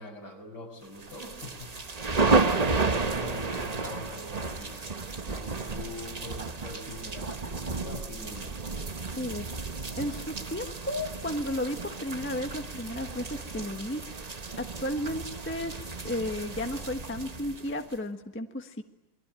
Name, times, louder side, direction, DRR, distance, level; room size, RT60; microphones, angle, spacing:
voice 1, 0.0-1.7 2.6-4.9 5.2-8.5, left 1 dB, 65° left, 2 dB, 6.6 m, -43 dB
sound 1, 1.0-18.0, right 3 dB, 30° right, 0.9 m, -32 dB
voice 2, 9.2-9.5 10.0-14.0 14.6-18.8, left 1 dB, 5° left, 5 dB, 1.2 m, -33 dB
28.0 x 22.5 x 9.0 m, 0.97 s
omnidirectional pair, 2.0 m